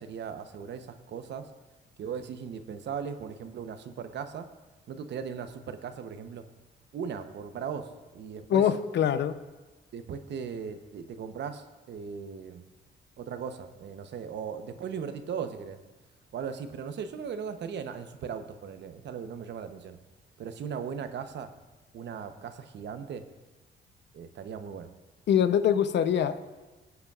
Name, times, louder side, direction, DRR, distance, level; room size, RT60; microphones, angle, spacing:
voice 1, 0.0-1.5 2.0-4.5 4.9-6.4 6.9-8.6 9.9-12.6 13.2-15.8 16.3-20.0 20.4-21.5 21.9-23.2 24.1-24.9, right 7 dB, 65° right, 8 dB, 0.8 m, -38 dB
voice 2, 8.5-9.4 25.3-26.4, left 9 dB, 65° left, 12 dB, 0.6 m, -24 dB
19.0 x 8.1 x 2.4 m, 1.2 s
cardioid pair, 90°, 20 cm